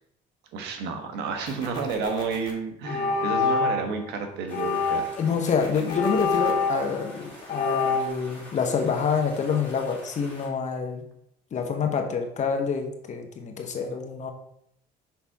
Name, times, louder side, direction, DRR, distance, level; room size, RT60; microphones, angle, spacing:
voice 1, 0.5-5.1, right 5 dB, 90° right, 5 dB, 1.2 m, -31 dB
sound 1, 1.5-2.5 5.5-6.5, left 3 dB, 25° left, 2.0 m, -44 dB
sound 2, 2.0-2.2 2.8-3.9 4.5-5.3 5.9-7.1 7.5-8.1, left 4 dB, 65° left, 1.2 m, -26 dB
sound 3, 4.5-10.5, left 1 dB, 10° left, 2.8 m, -46 dB
voice 2, 5.2-11.0 11.5-14.3, left 6 dB, 45° left, 4 dB, 1.1 m, -27 dB
5.8 x 5.7 x 3.6 m, 0.73 s
cardioid pair, 110°, 17 cm